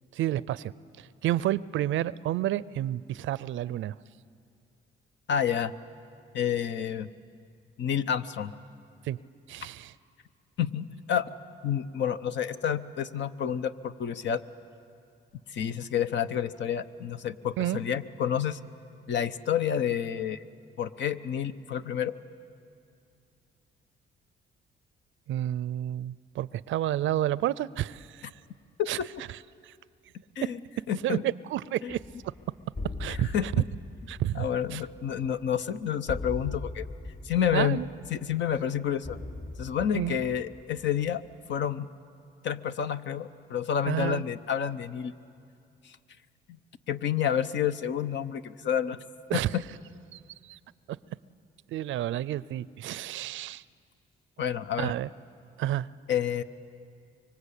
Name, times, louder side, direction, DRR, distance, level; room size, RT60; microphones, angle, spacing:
voice 1, 0.1-0.7 1.0-3.9 9.0-9.2 9.5-9.9 17.6-17.8 25.3-28.3 28.9-29.0 29.6-29.7 31.0-32.0 33.0-33.5 34.1-34.8 37.5-37.9 39.9-40.2 43.9-44.2 49.3-49.5 50.1-50.6 51.7-53.6 54.8-55.1 55.6-55.9, right 13 dB, 75° right, 20 dB, 0.5 m, -30 dB
voice 2, 5.3-5.7 6.3-7.1 7.8-8.5 10.6-11.3 11.6-14.4 15.5-18.6 19.1-20.4 20.8-22.2 28.8-29.1 30.4-30.6 30.9-31.2 31.8-32.0 33.1-33.5 34.4-36.9 37.2-37.8 38.1-39.2 39.6-41.2 41.5-41.9 42.4-45.1 46.9-49.0 49.3-49.6 54.4-54.9 56.1-56.4, left 8 dB, 65° left, 12 dB, 0.9 m, -29 dB
sound 1, 31.9-41.3, left 2 dB, 50° left, 4.2 m, -40 dB
25.0 x 24.0 x 8.4 m, 2.4 s
cardioid pair, 90°, 20 cm